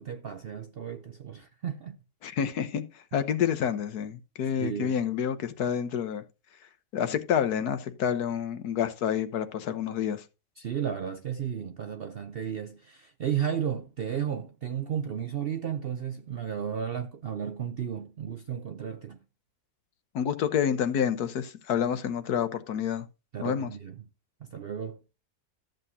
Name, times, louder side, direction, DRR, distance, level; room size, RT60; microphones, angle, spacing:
voice 1, 0.0-2.0 4.6-5.0 10.6-19.2 23.3-24.0 24.4-25.0, right 8 dB, 60° right, 0.6 m, -33 dB
voice 2, 2.2-2.8 3.1-6.2 6.9-10.2 20.1-23.0 23.4-23.7, left 8 dB, 75° left, 1.5 m, -28 dB
13.5 x 7.8 x 2.7 m
omnidirectional pair, 1.7 m